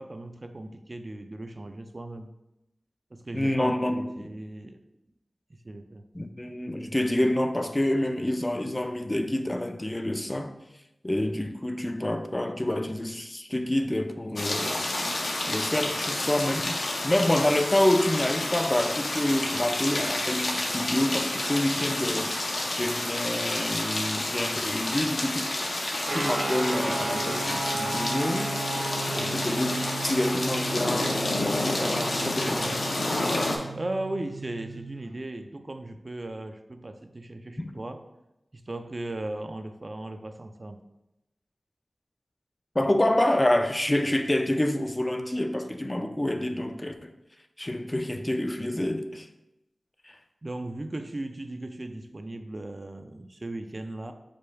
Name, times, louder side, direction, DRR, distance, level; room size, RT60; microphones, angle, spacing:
voice 1, 0.0-2.3 3.1-4.8 5.5-6.1 33.7-38.0 38.5-40.8 50.4-54.1, right 1 dB, 45° right, 0.4 m, -37 dB
voice 2, 3.3-4.3 6.1-10.5 11.0-14.9 15.5-25.5 26.1-28.5 29.1-31.2 31.5-32.9 37.6-37.7 42.8-47.1 47.6-49.3 50.0-50.2, left 1 dB, 25° left, 0.4 m, -27 dB
sound 1, 14.4-33.6, left 1 dB, 75° left, 0.7 m, -29 dB
sound 2, 26.1-35.0, right 3 dB, 75° right, 0.9 m, -35 dB
5.0 x 2.3 x 4.4 m
cardioid pair, 50°, 0 cm